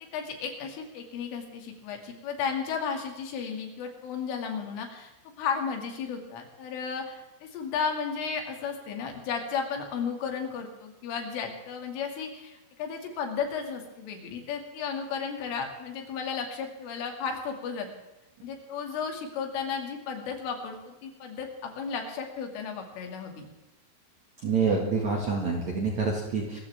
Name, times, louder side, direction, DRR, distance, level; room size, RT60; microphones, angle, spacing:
voice 1, 0.1-5.1 5.4-17.9 18.4-23.4, left 6 dB, 75° left, 3 dB, 4.8 m, -34 dB
voice 2, 24.4-26.6, right 4 dB, 55° right, -1 dB, 2.1 m, -27 dB
25.5 x 14.5 x 3.5 m, 1.0 s
omnidirectional pair, 5.8 m